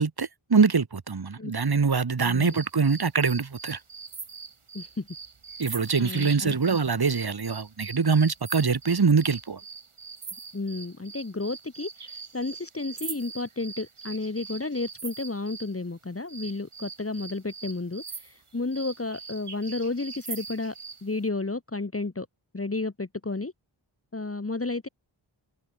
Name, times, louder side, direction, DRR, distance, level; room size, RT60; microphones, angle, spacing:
voice 1, 0.0-3.8 5.6-9.6, right 5 dB, 50° right, 1.4 m, -24 dB
voice 2, 2.2-2.6 4.7-5.1 5.6-6.6 10.5-20.7 21.0-22.3 22.5-23.5 24.1-24.9, left 3 dB, 30° left, 1.4 m, -32 dB
sound 1, 2.5-15.7 16.3-21.0, right 5 dB, 85° right, 2.5 m, -42 dB
wide cardioid pair, 45°, 49 cm